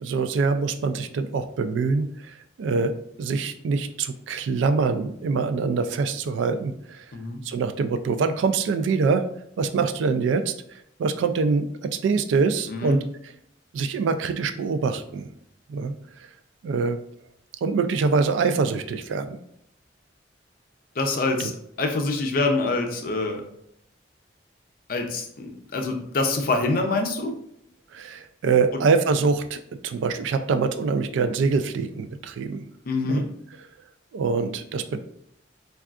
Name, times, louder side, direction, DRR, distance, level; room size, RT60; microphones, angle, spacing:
voice 1, 0.0-2.1 2.6-7.0 7.4-9.3 9.6-10.5 11.0-13.0 13.7-15.3 15.7-15.9 16.6-17.0 17.6-19.4 21.4-21.5 27.9-32.6 33.0-33.2 34.1-35.0, right 4 dB, 85° right, 10 dB, 0.3 m, -24 dB
voice 2, 7.1-7.4 12.7-13.0 21.0-21.5 21.8-23.4 24.9-27.3 28.7-28.8 32.9-33.3, left 3 dB, 50° left, 3 dB, 0.5 m, -25 dB
3.5 x 2.3 x 2.4 m, 0.73 s
head